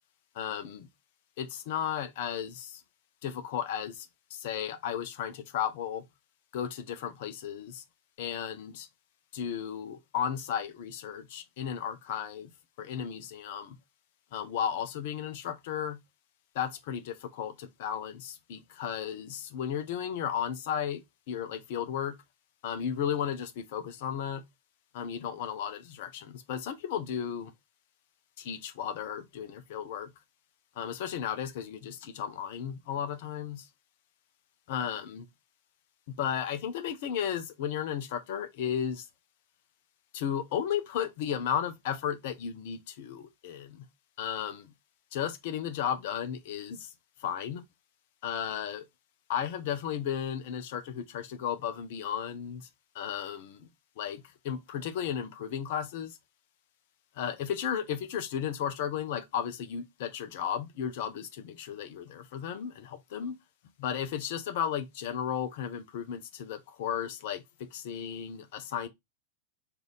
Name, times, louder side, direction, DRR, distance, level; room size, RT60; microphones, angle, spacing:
voice 1, 0.3-0.9 1.4-2.8 3.2-4.1 4.3-6.0 6.5-7.8 8.2-8.9 9.3-12.5 12.8-13.8 14.3-16.0 16.5-22.2 22.6-24.4 24.9-27.5 28.4-30.1 30.8-33.7 34.7-35.3 36.1-39.1 40.1-43.8 44.2-44.7 45.1-46.9 47.2-47.6 48.2-48.8 49.3-52.7 52.9-53.7 54.0-56.2 57.2-63.3 63.8-67.4 67.7-68.9, left 9 dB, 50° left, 0.5 m, -34 dB
3.3 x 2.5 x 3.6 m
figure-of-eight pair, 90°, 0 cm